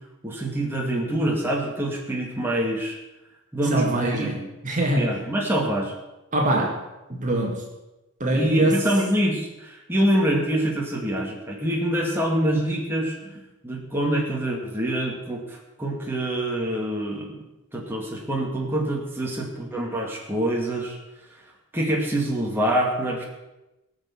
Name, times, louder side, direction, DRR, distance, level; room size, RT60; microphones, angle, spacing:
voice 1, 0.2-3.0 3.5-4.5 4.9-5.9 6.5-6.7 8.3-13.2 13.6-17.4 17.7-21.0 21.7-23.2, right 1 dB, 10° right, -2 dB, 2.2 m, -25 dB
voice 2, 3.7-5.2 6.3-6.8 7.1-7.6 8.2-8.8, right 1 dB, 35° right, 0 dB, 2.1 m, -23 dB
19.0 x 6.5 x 7.2 m, 1.0 s
head